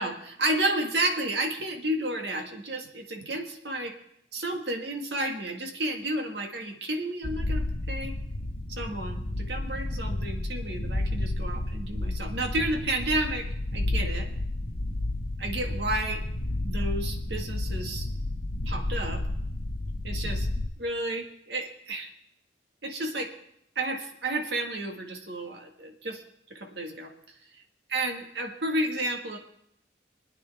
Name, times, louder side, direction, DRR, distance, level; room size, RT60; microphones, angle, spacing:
voice 1, 0.0-4.0 4.3-8.2 8.7-14.3 15.4-16.2 16.6-18.1 18.6-19.2 20.0-20.5 20.8-22.1 22.8-23.3 23.7-26.2 26.5-27.1 27.9-29.4, right 1 dB, 70° right, 3 dB, 1.8 m, -31 dB
sound 1, 7.2-20.7, left 1 dB, 55° left, 1.0 m, -31 dB
25.5 x 9.4 x 3.5 m, 0.73 s
head